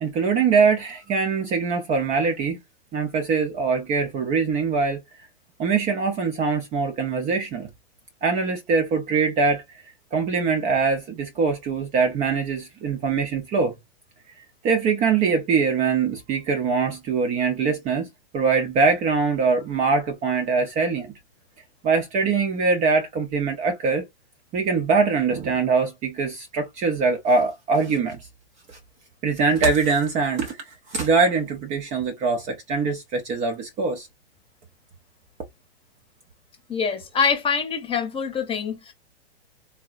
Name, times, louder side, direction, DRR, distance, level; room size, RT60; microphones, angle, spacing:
voice 1, 0.0-2.6 2.9-5.0 5.6-7.7 8.2-9.8 10.1-13.7 14.6-18.1 18.3-21.1 21.8-24.0 24.5-28.2 28.7-28.8 29.2-34.1, right 4 dB, 20° right, 0.5 m, -23 dB
voice 2, 36.7-38.9, left 6 dB, 15° left, 0.9 m, -25 dB
3.6 x 2.0 x 2.4 m
hypercardioid pair, 125°, 32 cm